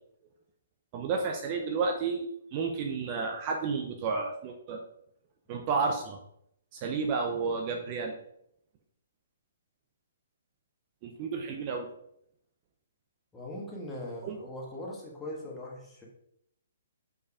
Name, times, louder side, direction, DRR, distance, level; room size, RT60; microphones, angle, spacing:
voice 1, 0.9-4.8 5.5-6.2 6.7-8.1 11.0-11.9 14.2-14.4, right 4 dB, 30° right, 3 dB, 0.7 m, -31 dB
voice 2, 13.3-16.0, left 1 dB, 10° left, -4 dB, 1.6 m, -40 dB
5.2 x 4.7 x 4.9 m, 0.74 s
hypercardioid pair, 155°, 0 cm